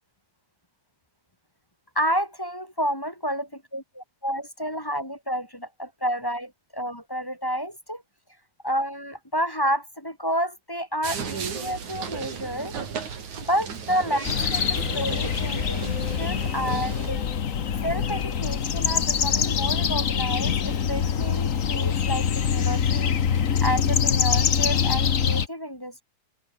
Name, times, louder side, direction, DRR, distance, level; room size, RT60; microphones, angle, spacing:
voice 1, 1.9-3.5 3.7-8.0 8.6-12.8 13.4-15.8 16.2-17.3 17.8-26.0, equal, 10° left, 2.1 m, -30 dB
sound 1, 11.0-17.1, right 6 dB, 75° right, 4.7 m, -35 dB
sound 2, 14.2-25.5, left 7 dB, 80° left, 0.7 m, -24 dB
open air
omnidirectional pair, 3.3 m